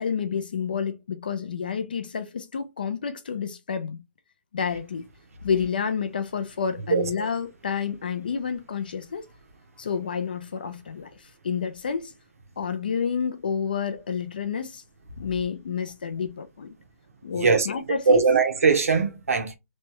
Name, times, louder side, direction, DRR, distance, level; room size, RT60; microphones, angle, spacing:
voice 1, 0.0-4.0 4.5-5.1 5.4-9.2 9.8-12.1 12.6-14.8 15.2-16.7 17.2-18.2, left 6 dB, 35° left, 0.4 m, -29 dB
voice 2, 17.3-19.6, right 5 dB, 60° right, 0.9 m, -21 dB
3.1 x 2.2 x 2.9 m
hypercardioid pair, 180°, 9 cm